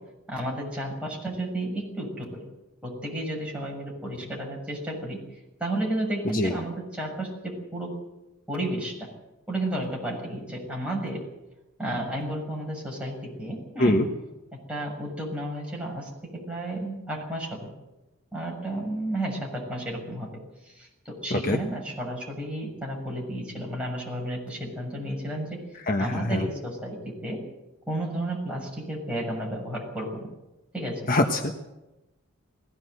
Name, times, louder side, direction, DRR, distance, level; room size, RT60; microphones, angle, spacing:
voice 1, 0.3-2.5 2.8-5.2 5.6-7.9 8.5-9.1 9.5-11.2 11.8-14.0 14.7-16.1 16.5-17.7 18.3-20.3 20.6-25.6 26.0-27.4 27.9-30.3 30.7-31.0, right 1 dB, 5° right, -2 dB, 6.7 m, -32 dB
voice 2, 25.9-26.4 31.1-31.5, left 1 dB, 40° left, 4 dB, 1.3 m, -23 dB
20.0 x 16.5 x 8.0 m, 1.0 s
head